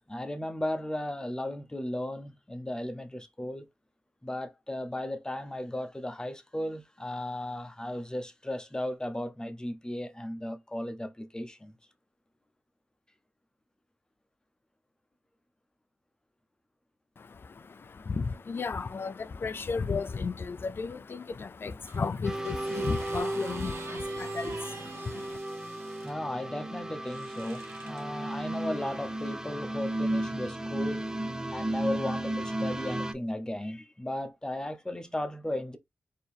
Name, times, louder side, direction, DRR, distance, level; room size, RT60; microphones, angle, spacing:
voice 1, 0.0-3.7 4.2-11.7 26.0-31.0 31.5-35.8, left 1 dB, 15° left, 0.9 m, -35 dB
voice 2, 17.2-25.4, left 4 dB, 50° left, 0.5 m, -34 dB
sound 1, 21.9-26.1 27.0-28.0 28.9-29.1, right 5 dB, 65° right, 0.8 m, -47 dB
sound 2, 22.2-33.1, right 1 dB, 10° right, 0.7 m, -34 dB
4.5 x 3.0 x 3.5 m
wide cardioid pair, 80°, 5 cm